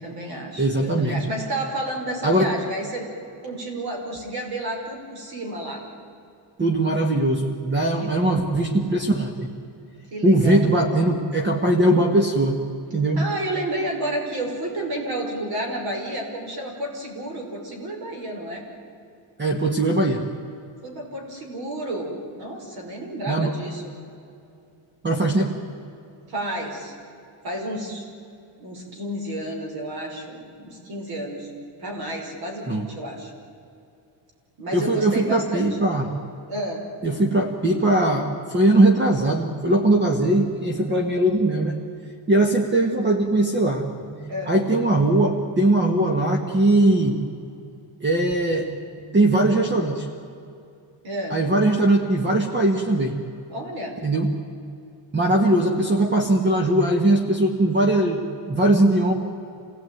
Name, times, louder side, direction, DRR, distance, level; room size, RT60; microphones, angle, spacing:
voice 1, 0.0-3.1 3.4-5.8 8.0-8.4 10.1-10.6 13.2-18.6 20.8-23.9 26.3-26.9 27.4-28.0 28.6-31.5 31.8-33.3 34.6-35.8 36.5-36.8 44.3-44.6 51.0-51.4 53.5-54.0, right 1 dB, 55° right, 2 dB, 5.6 m, -31 dB
voice 2, 0.6-1.1 2.2-2.5 6.6-9.5 10.2-12.6 12.9-13.2 19.4-20.2 23.3-23.5 25.0-25.5 32.7-32.9 34.7-36.1 37.0-41.8 42.3-47.2 48.0-48.7 48.9-50.1 51.3-53.1 54.0-54.3 55.1-59.1, right 1 dB, 25° right, 4 dB, 1.6 m, -20 dB
27.5 x 17.5 x 9.3 m, 2.6 s
cardioid pair, 175°, 44 cm